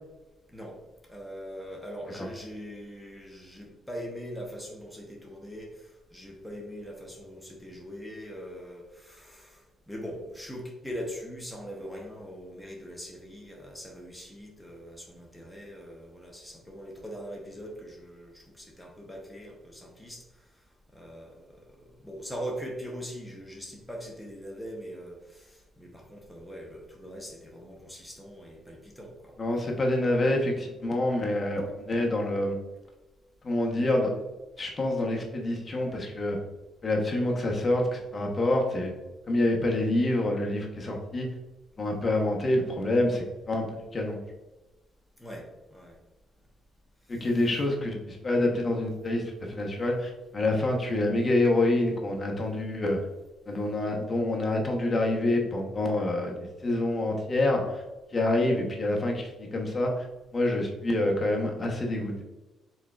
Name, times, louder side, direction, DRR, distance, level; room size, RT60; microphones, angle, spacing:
voice 1, 1.1-20.2 20.9-21.6 22.0-29.3 45.2-45.4 45.7-46.0, equal, ahead, -1 dB, 0.9 m, -41 dB
voice 2, 29.4-32.6 33.4-34.1 34.6-36.4 36.8-38.9 39.3-41.3 41.8-44.2 47.1-53.0 53.5-57.8 58.1-59.9 60.3-62.2, left 1 dB, 30° left, 0 dB, 1.0 m, -27 dB
4.7 x 4.2 x 2.4 m, 1.1 s
cardioid pair, 90°, 0 cm